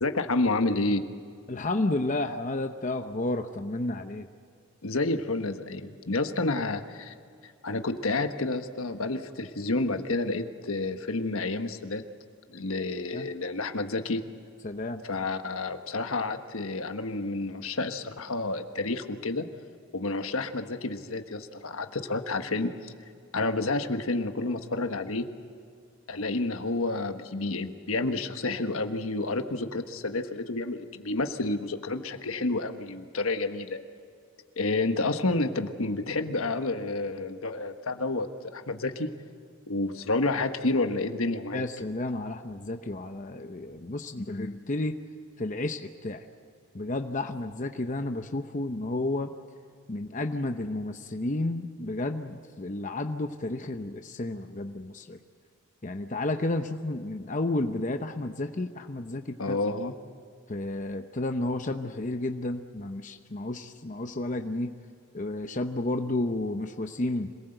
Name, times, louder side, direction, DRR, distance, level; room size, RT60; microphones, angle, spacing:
voice 1, 0.0-1.0 4.8-7.1 7.6-12.0 12.5-14.2 15.0-19.5 19.9-22.9 23.3-25.3 26.1-33.8 34.6-38.3 38.5-39.1 39.7-41.6 59.4-59.9, left 2 dB, 75° left, 7 dB, 1.3 m, -29 dB
voice 2, 1.5-4.3 13.1-13.3 14.6-15.0 41.5-44.9 45.4-46.2 46.7-49.3 49.9-55.2 55.8-59.6 60.5-64.7 65.1-67.3, left 2 dB, 35° left, 6 dB, 0.8 m, -31 dB
26.0 x 19.0 x 7.9 m, 2.3 s
head